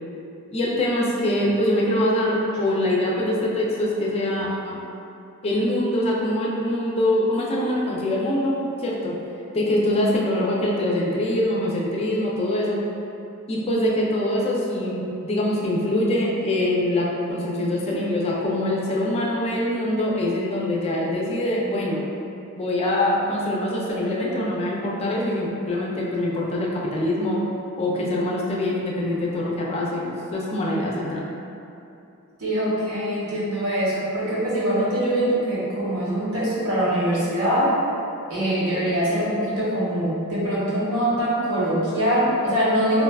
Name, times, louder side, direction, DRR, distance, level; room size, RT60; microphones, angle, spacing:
voice 1, 0.5-4.8 5.4-9.2 9.5-12.8 13.5-22.1 22.6-27.4 27.8-31.2, left 1 dB, 30° left, -4 dB, 0.3 m, -24 dB
voice 2, 32.4-37.7 38.3-43.0, equal, 80° right, -9 dB, 1.0 m, -23 dB
3.9 x 2.2 x 2.2 m, 2.7 s
head